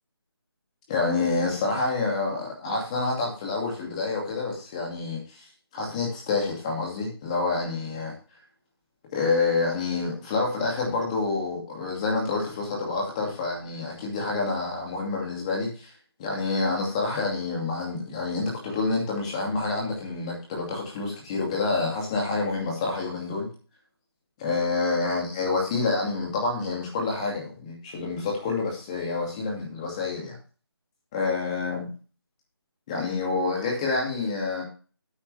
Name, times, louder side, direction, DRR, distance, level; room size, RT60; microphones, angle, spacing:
voice 1, 0.9-5.5 5.7-8.1 9.1-15.9 16.2-23.5 24.4-30.4 31.1-31.9 32.9-34.6, left 3 dB, 15° left, -1 dB, 2.4 m, -28 dB
11.0 x 8.6 x 3.4 m, 0.36 s
figure-of-eight pair, 170°, 13 cm